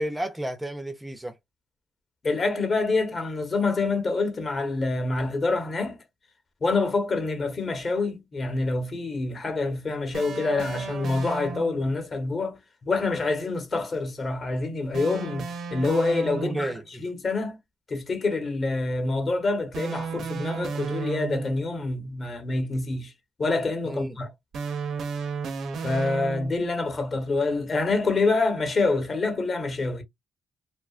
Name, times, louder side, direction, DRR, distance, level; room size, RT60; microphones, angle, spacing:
voice 1, 0.0-1.3 16.4-17.0 23.8-24.2, right 1 dB, 10° right, 0.4 m, -31 dB
voice 2, 2.2-6.0 6.6-16.7 17.0-17.6 17.9-23.1 23.4-24.3 25.8-30.0, left 3 dB, 40° left, 1.0 m, -26 dB
sound 1, 10.1-12.0 14.9-16.8 19.7-21.7 24.5-26.7, right 5 dB, 65° right, 0.5 m, -33 dB
2.7 x 2.3 x 2.3 m
cardioid pair, 90°, 0 cm